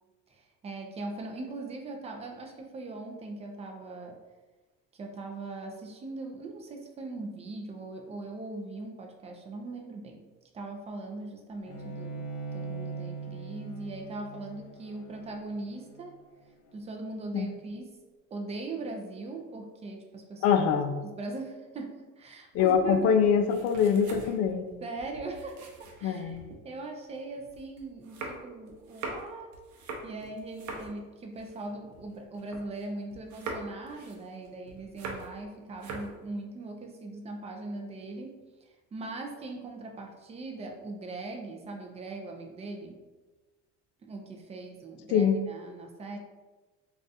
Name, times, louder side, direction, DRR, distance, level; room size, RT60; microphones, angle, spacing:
voice 1, 0.3-4.2 4.9-10.2 10.5-12.3 12.5-16.2 16.7-18.0 18.3-20.6 21.0-23.2 24.8-29.5 30.0-38.4 38.9-43.0 44.0-46.2, right 2 dB, 20° right, 2 dB, 0.4 m, -40 dB
Bowed string instrument, 11.7-17.0, right 4 dB, 80° left, 1.0 m, -41 dB
voice 2, 20.4-21.0 22.5-24.6 26.0-26.4 45.1-45.4, left 7 dB, 50° left, 7 dB, 0.4 m, -24 dB
sound 1, 22.5-26.6 27.0-32.8 33.1-35.4 35.7-36.2, right 3 dB, 65° right, 0.7 m, -43 dB
2.4 x 2.3 x 4.0 m, 1.2 s
cardioid pair, 135°, 31 cm